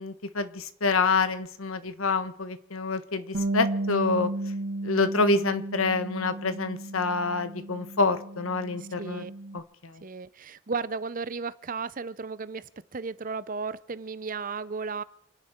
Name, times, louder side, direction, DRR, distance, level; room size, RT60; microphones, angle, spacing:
voice 1, 0.0-4.3 4.8-9.3 9.5-9.9, left 3 dB, 80° left, 1.2 m, -27 dB
Bass guitar, 3.3-9.6, right 2 dB, 65° right, 1.5 m, -34 dB
voice 2, 8.8-9.3 10.0-15.0, right 4 dB, 40° right, 0.6 m, -34 dB
28.5 x 10.5 x 4.5 m
head